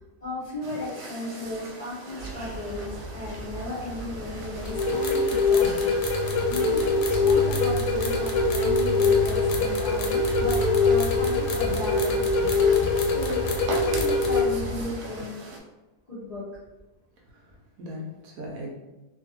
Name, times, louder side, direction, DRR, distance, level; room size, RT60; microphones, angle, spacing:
voice 1, 0.0-12.3 12.6-15.3 16.1-16.4, left 2 dB, 45° left, -10 dB, 0.5 m, -36 dB
sound 1, 0.6-15.6, right 2 dB, 85° right, 1.2 m, -41 dB
sound 2, 2.2-14.9, right 3 dB, 25° left, 1.2 m, -34 dB
sound 3, 4.6-14.4, left 4 dB, 80° left, 1.1 m, -23 dB
voice 2, 17.3-18.7, left 1 dB, 70° right, -1 dB, 1.0 m, -39 dB
2.7 x 2.6 x 2.7 m, 1.1 s
omnidirectional pair, 1.7 m